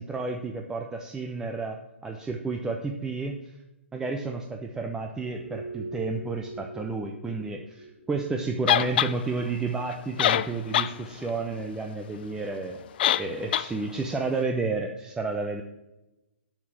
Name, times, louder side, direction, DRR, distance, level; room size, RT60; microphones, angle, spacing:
voice 1, 0.0-1.8 2.0-3.5 3.9-12.8 13.1-15.6, right 3 dB, 10° right, 2 dB, 0.8 m, -31 dB
sound 1, 5.2-11.4, right 2 dB, 50° right, 1.9 m, -44 dB
sound 2, 8.7-9.1 9.9-10.0 10.2-10.9 11.3-11.4 13.0-13.3 13.5-13.7, left 11 dB, 50° left, 0.5 m, -22 dB
8.2 x 7.3 x 7.4 m, 0.97 s
hypercardioid pair, 135°, 7 cm